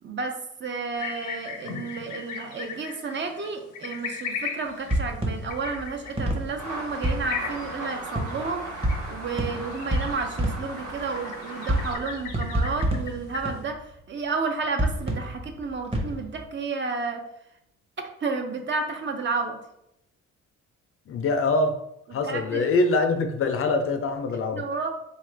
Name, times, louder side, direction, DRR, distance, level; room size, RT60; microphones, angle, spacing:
voice 1, 0.0-17.2 18.2-19.6 22.2-22.7 24.5-24.9, right 4 dB, 40° right, 5 dB, 0.6 m, -31 dB
sound 1, 1.0-13.6, left 6 dB, 85° left, 0.7 m, -38 dB
sound 2, 4.9-7.7 8.2-11.1 11.7-14.0 14.6-16.4, right 1 dB, 20° right, 0.9 m, -28 dB
sound 3, 6.6-12.0, right 1 dB, 70° right, 1.2 m, -37 dB
voice 2, 21.1-21.8 22.1-24.6, left 3 dB, 45° left, 7 dB, 0.4 m, -24 dB
3.7 x 2.3 x 3.2 m, 0.80 s
cardioid pair, 90°, 30 cm